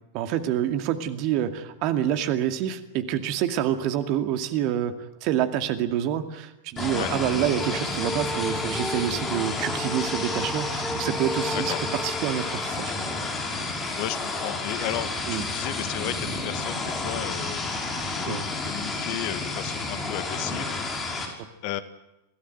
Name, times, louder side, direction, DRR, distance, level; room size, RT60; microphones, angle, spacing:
voice 1, 0.1-12.9 15.3-15.4 18.3-18.4 21.3-21.4, right 11 dB, 40° right, 8 dB, 2.3 m, -27 dB
sound 1, 6.8-21.3, left 3 dB, 20° left, 5.9 m, -31 dB
sound 2, 7.3-13.3, equal, ahead, 1.7 m, -34 dB
voice 2, 13.9-20.7 21.6-21.8, left 13 dB, 45° left, 12 dB, 1.8 m, -34 dB
26.5 x 17.5 x 9.3 m, 0.91 s
figure-of-eight pair, 90°, 0 cm